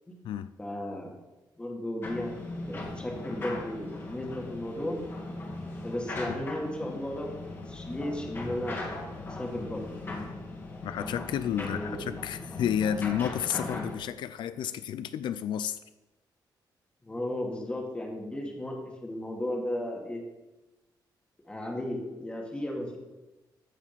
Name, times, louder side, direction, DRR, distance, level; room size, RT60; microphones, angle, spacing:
voice 1, 0.6-1.1 1.6-2.3 2.7-5.0 5.8-7.4 7.7-8.8 9.3-9.8 11.5-12.0 17.0-20.2 21.5-23.0, left 1 dB, 15° left, 1.9 m, -35 dB
sound 1, 2.0-13.9, left 2 dB, 30° left, 1.8 m, -39 dB
voice 2, 10.8-15.8, left 9 dB, 85° left, 0.4 m, -31 dB
14.0 x 4.9 x 6.9 m
wide cardioid pair, 175°, 8 cm